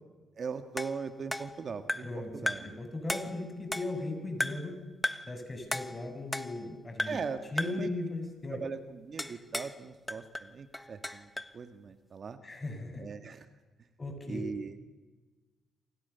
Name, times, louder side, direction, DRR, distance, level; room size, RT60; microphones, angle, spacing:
voice 1, 0.4-2.8 7.1-7.9 8.5-12.4 13.0-13.5 14.3-14.8, right 5 dB, 45° right, 8 dB, 1.8 m, -39 dB
sound 1, 0.8-2.2 2.5-2.8 3.1-4.1 4.4-4.7 5.0-5.4 5.7-6.7 7.0-7.3 7.6-7.9 9.2-9.8 10.1-11.6, left 1 dB, 10° left, 1.2 m, -36 dB
voice 2, 2.0-4.8 5.3-7.2 7.5-8.6 12.4-13.0 14.0-14.4, left 2 dB, 25° left, 5 dB, 6.9 m, -37 dB
28.5 x 26.5 x 7.0 m, 1.3 s
cardioid pair, 90°, 0 cm